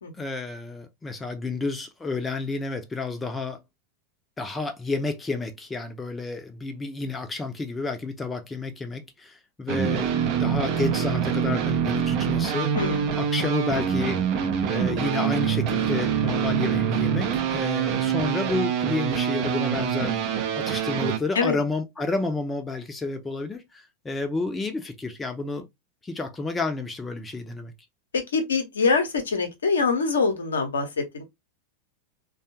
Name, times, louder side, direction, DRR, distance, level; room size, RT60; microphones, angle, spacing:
voice 1, 0.2-3.6 4.4-12.7 13.2-14.2 14.7-20.2 20.6-25.7 26.0-27.7, left 3 dB, 15° left, 0.7 m, -30 dB
sound 1, 9.7-21.2, right 8 dB, 40° right, 0.6 m, -25 dB
voice 2, 12.7-13.1 21.3-21.6 28.1-31.2, left 4 dB, 70° left, 0.8 m, -24 dB
3.4 x 2.3 x 2.8 m
figure-of-eight pair, 90°, 0 cm